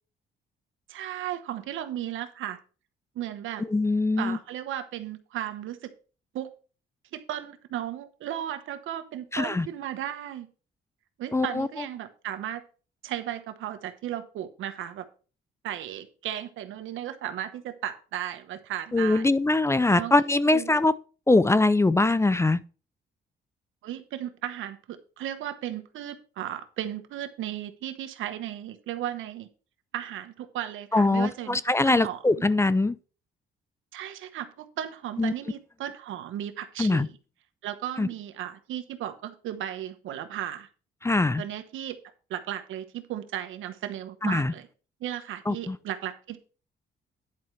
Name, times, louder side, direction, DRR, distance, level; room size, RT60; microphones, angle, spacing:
voice 1, 0.9-2.6 3.1-3.6 4.2-5.9 6.3-6.5 7.1-10.5 11.2-12.6 13.0-15.1 15.6-19.2 20.0-20.8 23.8-29.5 29.9-31.6 31.8-32.2 33.9-37.1 37.6-40.7 41.4-42.0 42.3-44.7 45.0-46.4, right 11 dB, 80° right, 1.2 m, -35 dB
voice 2, 3.7-4.4 9.3-9.7 11.3-11.7 18.9-20.9 21.3-22.6 30.9-33.0 35.2-35.3 36.8-37.1 38.0-38.1 41.0-41.4 44.2-44.5 45.5-45.8, left 2 dB, 15° left, 0.4 m, -22 dB
10.5 x 4.6 x 5.8 m
cardioid pair, 90°, 20 cm